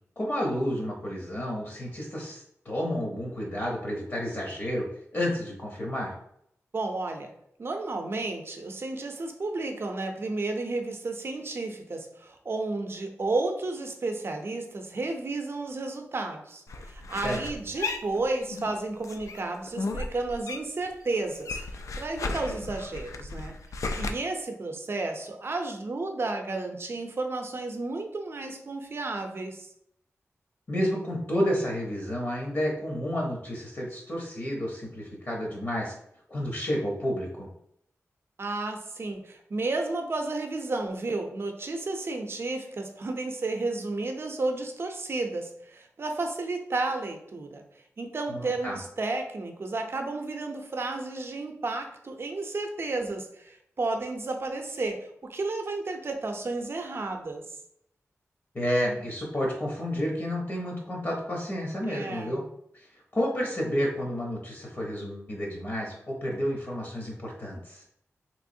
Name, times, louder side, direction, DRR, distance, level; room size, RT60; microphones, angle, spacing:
voice 1, 0.2-4.9 5.1-6.1 17.2-17.4 30.7-35.9 36.3-37.5 48.3-48.8 58.5-62.4 62.7-62.9 63.1-67.8, equal, 45° left, -1 dB, 0.8 m, -30 dB
voice 2, 6.7-7.3 7.6-29.7 38.4-47.6 48.0-57.4 61.8-62.4, right 3 dB, 50° right, 4 dB, 0.5 m, -32 dB
sound 1, 16.7-18.7 19.0-20.9 21.1-24.1, left 3 dB, 85° left, 0.3 m, -35 dB
3.4 x 3.0 x 2.6 m, 0.72 s
wide cardioid pair, 105°, 5 cm